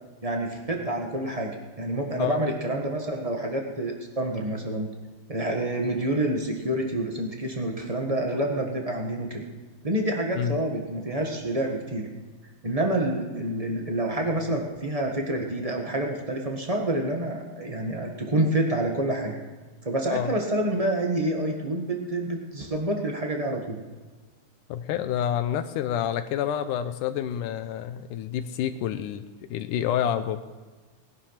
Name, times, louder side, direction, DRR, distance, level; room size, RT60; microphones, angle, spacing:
voice 1, 0.2-4.9 5.3-9.4 9.8-12.1 12.6-19.3 19.8-23.8, right 1 dB, 30° right, 1 dB, 0.6 m, -28 dB
voice 2, 24.7-29.2 29.5-30.4, left 10 dB, 90° left, 9 dB, 2.3 m, -28 dB
19.5 x 11.0 x 5.8 m, 1.3 s
omnidirectional pair, 3.6 m